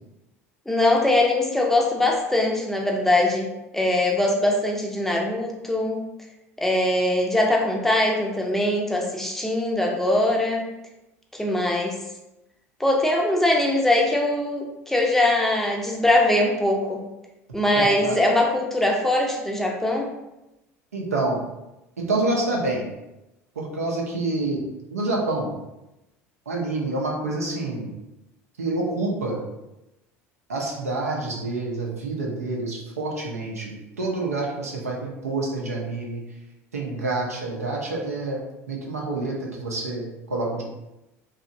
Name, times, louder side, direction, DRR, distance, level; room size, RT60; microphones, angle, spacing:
voice 1, 0.7-6.0 6.6-10.7 11.3-12.0 12.8-17.0 17.5-20.1, left 1 dB, 5° left, -1 dB, 0.5 m, -22 dB
voice 2, 17.8-18.3 20.9-21.4 22.0-22.8 23.6-24.6 24.9-25.5 26.5-27.9 28.6-29.4 30.5-36.2 36.7-38.4 38.7-40.6, right 2 dB, 85° right, -2 dB, 0.6 m, -27 dB
2.8 x 2.4 x 2.6 m, 0.94 s
figure-of-eight pair, 70°, 8 cm